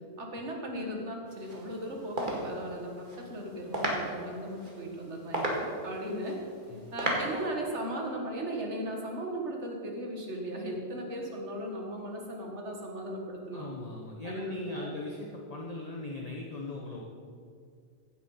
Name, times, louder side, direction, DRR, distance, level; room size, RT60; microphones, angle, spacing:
voice 1, 0.2-6.4 6.9-13.6 14.2-14.9, right 1 dB, 85° right, 0 dB, 2.1 m, -37 dB
sound 1, 1.3-7.5, right 1 dB, 45° right, 2.2 m, -36 dB
voice 2, 13.5-17.0, left 2 dB, 35° left, -1 dB, 1.2 m, -39 dB
15.5 x 7.6 x 5.6 m, 2.3 s
omnidirectional pair, 1.2 m